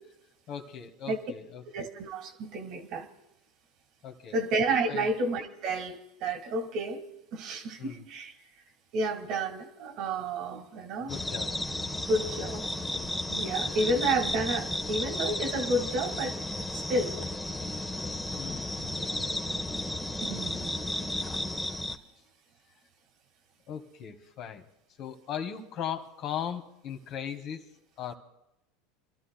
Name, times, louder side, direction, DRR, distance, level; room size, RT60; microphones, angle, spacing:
voice 1, 0.5-1.6 4.0-4.4 4.9-5.1 7.8-8.0 11.0-11.5 18.4-19.9 20.3-20.4 21.0-21.1 23.7-24.6 25.0-27.7 28.0-28.1, left 8 dB, 50° left, 6 dB, 1.4 m, -38 dB
voice 2, 1.7-3.1 4.3-7.0 7.3-8.3 8.9-11.1 12.1-12.6 13.3-16.3 16.7-17.2 20.2-20.7, right 2 dB, 55° right, 7 dB, 1.8 m, -30 dB
sound 1, 11.1-22.0, left 1 dB, 5° left, 1.1 m, -33 dB
30.0 x 13.0 x 2.2 m, 0.88 s
hypercardioid pair, 90°, 0 cm